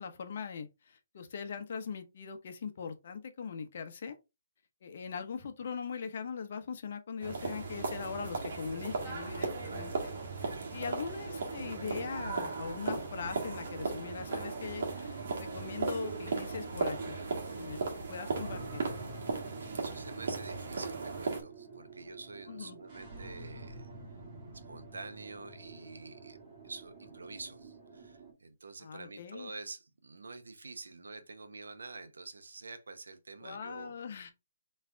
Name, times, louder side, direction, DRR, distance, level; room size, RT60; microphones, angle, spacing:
voice 1, 0.0-4.2 4.8-17.2 17.6-18.8 22.5-22.8 28.8-29.5 33.4-34.3, left 6 dB, 55° left, 0.9 m, -41 dB
sound 1, 7.2-21.4, right 4 dB, 60° right, 1.6 m, -36 dB
voice 2, 10.5-11.1 17.5-17.7 19.4-23.9 24.5-26.4 26.6-33.9, right 3 dB, 85° right, 0.8 m, -47 dB
sound 2, 18.3-28.3, right 2 dB, 30° right, 2.4 m, -49 dB
3.7 x 3.2 x 3.4 m
hypercardioid pair, 150°, 0 cm